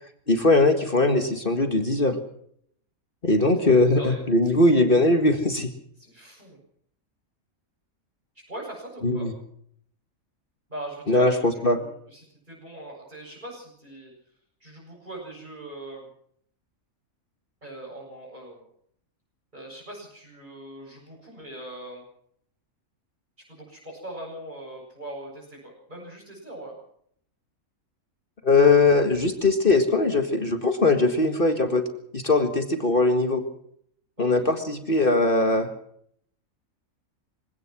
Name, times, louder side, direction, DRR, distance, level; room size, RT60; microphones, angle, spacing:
voice 1, 0.3-2.2 3.2-5.7 9.0-9.3 11.1-11.8 28.4-31.8 32.1-33.4 34.2-35.7, left 2 dB, 40° left, 6 dB, 2.0 m, -20 dB
voice 2, 4.0-4.5 6.0-6.6 8.5-9.3 10.7-11.3 11.7-14.1 14.6-16.1 17.6-18.7 19.5-22.0 23.5-26.8 34.2-34.6, right 1 dB, 30° right, -5 dB, 8.0 m, -41 dB
24.5 x 17.5 x 6.1 m, 0.67 s
omnidirectional pair, 1.5 m